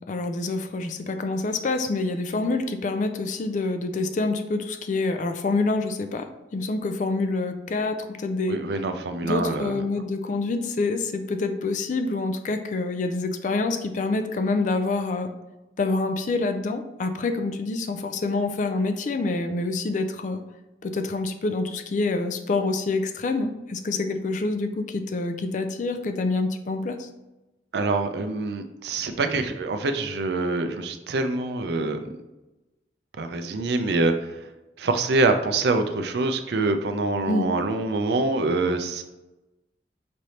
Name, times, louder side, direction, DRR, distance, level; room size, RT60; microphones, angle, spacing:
voice 1, 0.1-8.6 9.2-15.3 15.8-20.4 20.8-27.1 37.3-37.5, left 3 dB, 45° left, 7 dB, 0.4 m, -27 dB
voice 2, 8.5-9.8 27.7-32.0 33.2-34.4 34.8-39.0, right 3 dB, 65° right, 8 dB, 0.4 m, -25 dB
5.1 x 3.2 x 2.8 m, 1.0 s
head